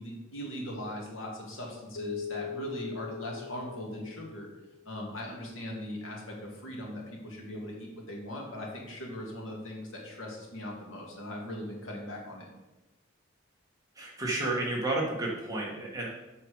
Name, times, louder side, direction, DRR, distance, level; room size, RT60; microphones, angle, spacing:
voice 1, 0.0-4.5 4.9-12.5, equal, 85° left, -1 dB, 2.2 m, -39 dB
Keyboard (musical), 2.0-4.9, left 6 dB, 70° left, 0.5 m, -41 dB
voice 2, 13.9-16.1, right 2 dB, 15° right, -4 dB, 1.8 m, -31 dB
7.3 x 6.8 x 5.0 m, 1.1 s
head